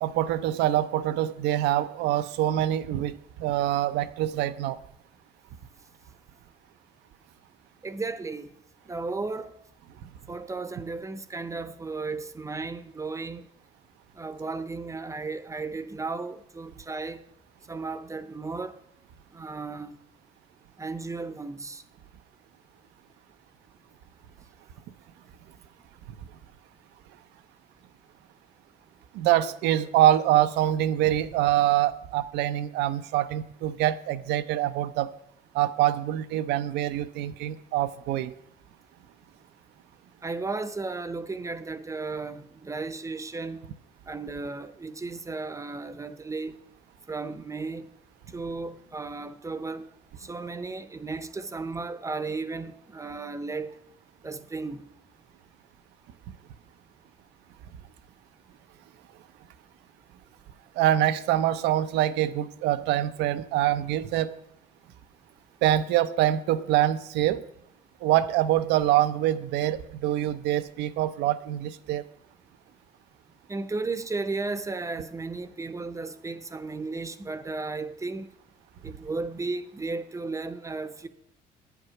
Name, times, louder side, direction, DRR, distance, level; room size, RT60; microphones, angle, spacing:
voice 1, 0.0-4.8 29.1-35.1 35.5-38.3 60.8-64.3 65.6-67.4 68.0-72.0, right 12 dB, 85° right, 0.6 m, -25 dB
voice 2, 7.8-8.5 8.9-9.5 10.3-13.4 14.2-17.2 17.7-18.7 19.3-20.0 20.8-21.8 40.2-43.6 44.1-46.5 47.1-47.9 48.3-49.9 50.2-53.8 54.2-54.8 73.5-78.3 78.8-81.1, right 3 dB, 20° right, 0.7 m, -34 dB
9.4 x 8.1 x 5.8 m
cardioid pair, 110°, 17 cm